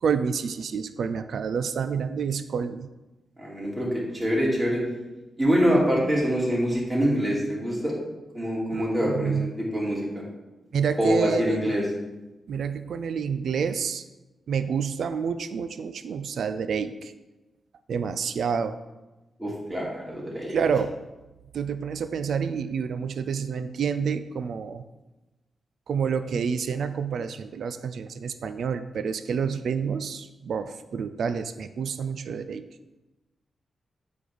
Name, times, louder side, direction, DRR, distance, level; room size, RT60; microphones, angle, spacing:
voice 1, 0.0-2.9 8.7-9.5 10.7-11.7 12.5-14.0 14.5-17.1 17.9-18.8 20.5-20.9 21.5-24.8 25.9-32.6, right 6 dB, 75° right, 11 dB, 0.4 m, -28 dB
voice 2, 3.4-4.8 5.4-7.9 8.3-10.0 11.0-11.8 19.4-20.6, equal, 15° right, -5 dB, 2.8 m, -25 dB
8.4 x 3.6 x 6.1 m, 1.1 s
cardioid pair, 95°, 0 cm